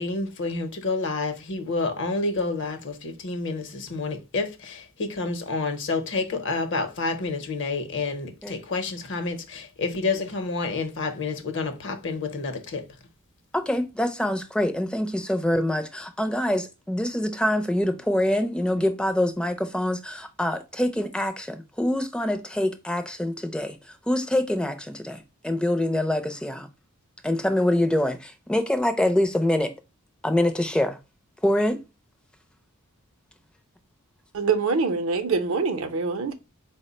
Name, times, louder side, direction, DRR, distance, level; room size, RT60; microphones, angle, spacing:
voice 1, 0.0-12.9, left 3 dB, 55° left, 0.8 m, -29 dB
voice 2, 13.5-26.7 27.2-29.7 30.2-31.0 31.4-31.8, left 1 dB, 5° left, 0.4 m, -25 dB
voice 3, 34.3-36.3, right 4 dB, 70° right, 0.6 m, -24 dB
4.4 x 2.1 x 4.0 m
head